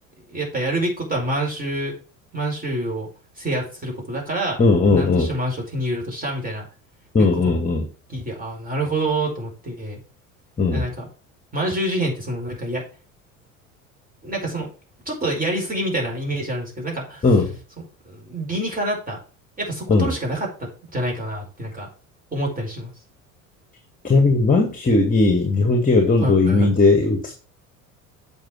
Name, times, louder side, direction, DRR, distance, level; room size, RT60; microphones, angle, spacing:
voice 1, 0.3-1.9 2.3-3.1 3.4-4.6 4.9-6.7 7.3-7.6 8.1-10.0 10.7-11.1 11.5-12.8 14.2-14.7 15.0-17.3 18.0-19.2 19.6-21.9 22.3-22.9 26.2-26.7, right 1 dB, 20° right, -1 dB, 4.8 m, -27 dB
voice 2, 4.6-5.3 7.1-7.9 10.6-10.8 17.2-17.5 19.9-20.1 24.0-27.3, left 3 dB, 20° left, 4 dB, 1.7 m, -17 dB
7.3 x 5.9 x 4.6 m, 0.36 s
figure-of-eight pair, 65°, 41 cm